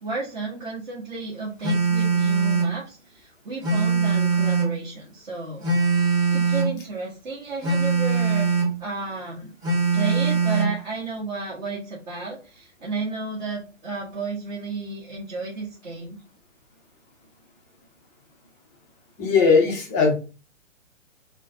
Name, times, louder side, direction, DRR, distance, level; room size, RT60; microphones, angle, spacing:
voice 1, 0.0-5.6 6.3-9.5 9.9-16.2, right 3 dB, 40° right, -7 dB, 1.4 m, -32 dB
Telephone, 1.6-2.8 3.6-4.8 5.6-6.8 7.6-8.8 9.6-10.8, right 5 dB, 20° right, 2.1 m, -22 dB
voice 2, 19.2-20.2, left 5 dB, 15° left, 0 dB, 0.6 m, -18 dB
3.8 x 2.2 x 3.9 m, 0.34 s
figure-of-eight pair, 135°, 39 cm